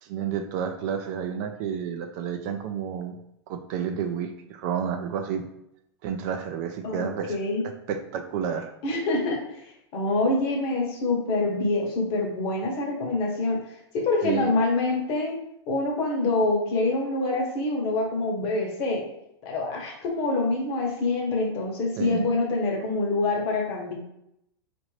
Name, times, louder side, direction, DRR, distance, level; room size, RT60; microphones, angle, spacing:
voice 1, 0.0-3.2 3.5-5.4 6.0-7.4 7.9-8.7 14.2-14.5 22.0-22.2, right 7 dB, 40° right, 7 dB, 0.3 m, -30 dB
voice 2, 6.8-7.6 8.8-9.6 9.9-13.6 13.9-15.4 15.7-19.0 19.4-23.9, left 2 dB, 40° left, 1 dB, 0.9 m, -26 dB
4.0 x 2.5 x 3.2 m, 0.81 s
hypercardioid pair, 140°, 14 cm